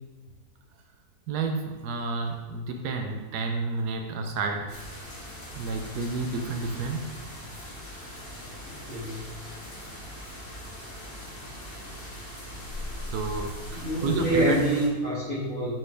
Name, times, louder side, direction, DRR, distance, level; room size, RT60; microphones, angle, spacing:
voice 1, 1.3-4.8 5.6-7.0 13.1-14.6, right 3 dB, 85° right, 4 dB, 1.2 m, -30 dB
sound 1, 4.7-14.9, equal, 75° left, 2.5 m, -40 dB
voice 2, 8.6-9.3 13.7-15.7, right 1 dB, 55° left, -13 dB, 2.8 m, -27 dB
10.5 x 4.5 x 3.3 m, 1.3 s
omnidirectional pair, 1.7 m